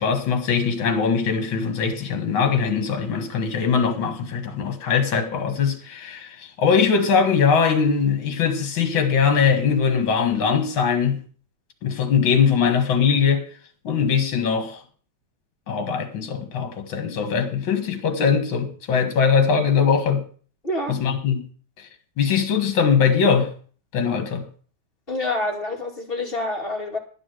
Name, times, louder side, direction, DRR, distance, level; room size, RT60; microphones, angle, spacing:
voice 1, 0.0-11.2 11.8-13.4 13.8-14.8 15.7-20.2 20.9-21.4 21.8-21.9 22.2-23.5 23.9-24.4, left 6 dB, 65° left, 2.4 m, -21 dB
voice 2, 20.6-21.0 25.1-27.0, left 2 dB, 25° left, 2.5 m, -27 dB
10.5 x 10.0 x 6.4 m
omnidirectional pair, 2.4 m